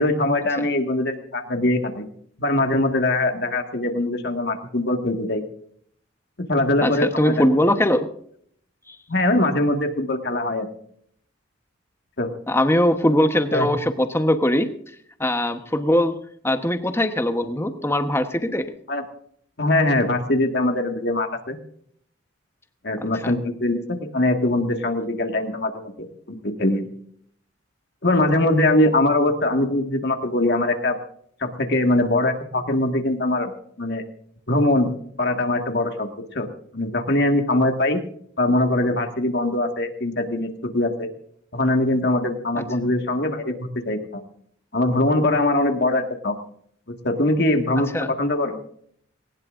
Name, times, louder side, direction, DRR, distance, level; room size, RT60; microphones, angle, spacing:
voice 1, 0.0-2.0 2.4-5.4 6.5-7.3 9.1-10.7 12.2-12.3 13.5-13.7 18.9-19.0 19.6-21.6 22.8-26.9 28.0-31.0 31.4-33.5 33.8-34.0 34.5-34.9 35.2-36.5 36.7-38.0 38.4-41.1 41.5-44.2 44.7-46.3 47.0-48.6, left 1 dB, 55° left, 5 dB, 1.9 m, -22 dB
voice 2, 6.8-8.1 8.9-9.0 12.5-14.7 15.2-16.2 16.4-18.7 23.2-23.3 42.6-42.7 47.9-48.1, left 1 dB, 15° left, 8 dB, 1.1 m, -21 dB
19.5 x 19.0 x 2.6 m, 0.64 s
head